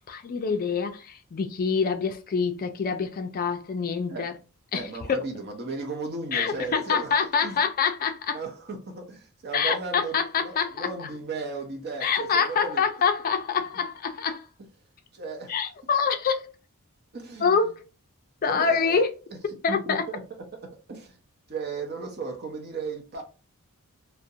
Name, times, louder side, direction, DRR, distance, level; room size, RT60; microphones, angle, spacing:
voice 1, 0.1-4.3 4.7-4.9 6.3-8.4 9.5-11.1 12.0-14.5 15.5-16.5 17.4-17.8 18.4-19.1 19.6-20.0, left 6 dB, 40° left, 0.4 m, -26 dB
voice 2, 4.7-7.1 7.4-7.6 8.3-12.9 15.1-15.6 17.1-17.7 18.4-19.0 19.3-20.2 20.6-21.2 21.5-23.2, right 4 dB, 50° right, 0.7 m, -35 dB
2.4 x 2.1 x 2.7 m
head